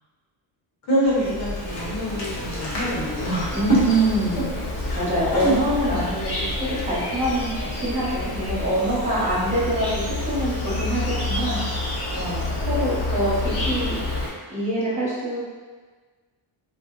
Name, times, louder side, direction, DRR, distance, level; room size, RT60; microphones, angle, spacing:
voice 1, 0.9-3.5 4.8-5.6, equal, 75° left, -7 dB, 1.1 m, -26 dB
Insect, 1.0-14.3, left 2 dB, 50° left, 0.7 m, -29 dB
voice 2, 3.5-4.5 4.9-7.5 7.7-11.6 12.1-13.9 14.5-15.4, right 1 dB, 15° right, -7 dB, 0.8 m, -25 dB
2.5 x 2.0 x 3.7 m, 1.4 s
cardioid pair, 145°, 50 cm